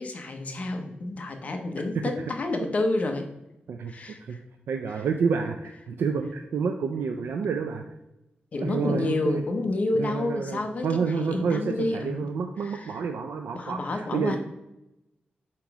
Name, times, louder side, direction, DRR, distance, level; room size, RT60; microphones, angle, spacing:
voice 1, 0.0-3.3 3.9-4.4 8.5-13.0 13.5-14.4, left 2 dB, 40° left, 4 dB, 0.8 m, -29 dB
voice 2, 4.7-7.8 8.6-9.4 9.9-14.4, right 5 dB, 85° right, 5 dB, 0.4 m, -29 dB
7.4 x 3.0 x 4.7 m, 0.90 s
wide cardioid pair, 160°, 4 cm